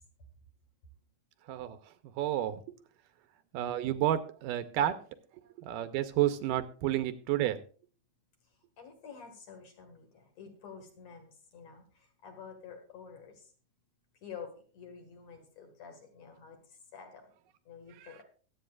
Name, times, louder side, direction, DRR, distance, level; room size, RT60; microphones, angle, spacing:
voice 1, 1.5-2.6 3.5-5.0 5.6-7.6 17.9-18.2, right 12 dB, 85° right, 10 dB, 2.4 m, -31 dB
voice 2, 8.8-11.8 12.2-13.4 14.2-16.6 16.9-17.2 17.7-18.2, left 6 dB, 55° left, 3 dB, 2.8 m, -49 dB
22.5 x 8.6 x 2.4 m, 0.39 s
omnidirectional pair, 3.9 m